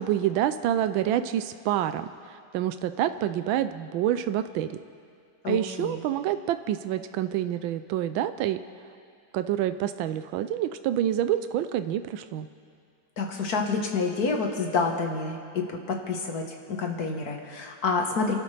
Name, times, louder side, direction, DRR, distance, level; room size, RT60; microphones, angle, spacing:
voice 1, 0.0-4.8 5.5-8.6 9.3-12.5, right 11 dB, 90° right, 11 dB, 1.4 m, -27 dB
voice 2, 5.4-6.0 13.2-18.3, left 4 dB, 55° left, 2 dB, 1.7 m, -28 dB
28.5 x 12.0 x 3.3 m, 2.3 s
omnidirectional pair, 2.1 m